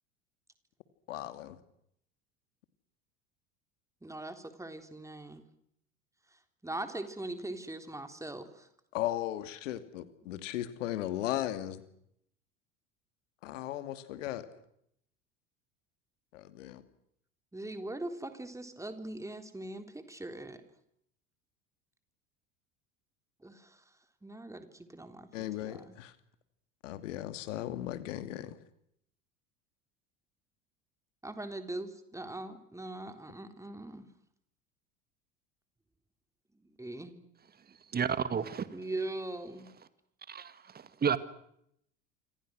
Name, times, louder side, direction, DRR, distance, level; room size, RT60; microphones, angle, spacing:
voice 1, 1.1-1.6 8.9-11.8 13.4-14.5 16.3-16.8 25.3-26.1 26.8-28.5, left 13 dB, 70° left, 2.7 m, -36 dB
voice 2, 4.0-5.4 6.3-8.7 17.5-20.6 23.4-23.8 24.2-25.9 31.2-34.1 36.6-37.2 38.7-39.7, right 2 dB, 10° right, 3.8 m, -41 dB
voice 3, 37.9-38.7 40.3-41.2, right 7 dB, 25° right, 1.9 m, -31 dB
28.5 x 26.0 x 6.4 m
figure-of-eight pair, 70°, 39 cm